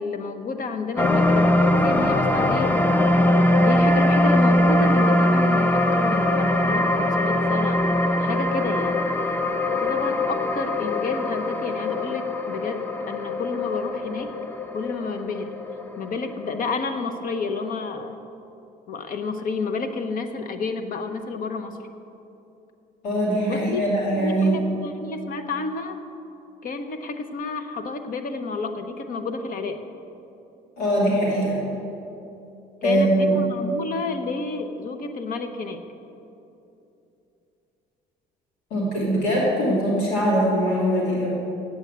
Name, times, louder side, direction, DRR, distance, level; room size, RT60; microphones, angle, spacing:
voice 1, 0.0-2.7 3.6-7.9 8.2-9.0 9.7-14.3 14.7-15.5 16.0-18.1 18.9-21.8 23.4-23.8 24.2-26.0 26.6-29.8 32.8-35.8, left 4 dB, 55° left, 8 dB, 0.9 m, -30 dB
sound 1, 1.0-17.4 17.9-18.0, left 1 dB, 10° left, 0.7 m, -22 dB
voice 2, 23.0-24.6 30.8-31.6 32.8-33.4 38.7-41.4, right 1 dB, 90° left, -5 dB, 2.8 m, -22 dB
8.8 x 8.2 x 8.1 m, 2.8 s
cardioid pair, 110°, 17 cm